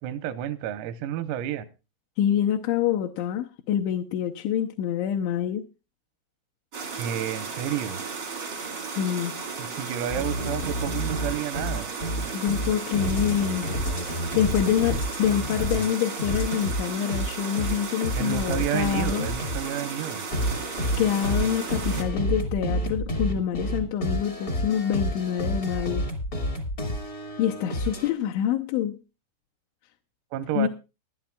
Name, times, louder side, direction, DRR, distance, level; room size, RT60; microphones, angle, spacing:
voice 1, 0.0-1.7 7.0-8.0 9.6-11.9 18.2-20.2 30.3-30.7, right 11 dB, 85° right, 3.6 m, -30 dB
voice 2, 2.2-5.6 8.8-9.4 12.3-19.3 21.0-26.1 27.4-29.0 30.6-30.7, left 9 dB, 80° left, 2.8 m, -26 dB
sound 1, 6.7-22.0, right 5 dB, 70° right, 1.0 m, -35 dB
sound 2, 10.1-15.9 16.2-19.6 20.3-28.1, equal, 60° left, 0.9 m, -29 dB
21.0 x 11.0 x 2.4 m
omnidirectional pair, 6.0 m